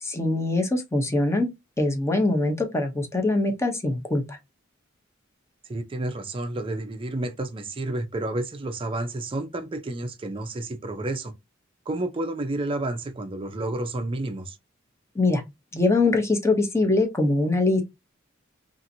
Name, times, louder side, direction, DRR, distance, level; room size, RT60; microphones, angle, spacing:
voice 1, 0.0-1.5 1.8-4.4 15.1-15.4 15.7-17.8, left 2 dB, 15° left, 0.7 m, -23 dB
voice 2, 5.7-11.3 11.9-14.6, right 2 dB, 25° right, 0.4 m, -30 dB
2.7 x 2.5 x 2.6 m
head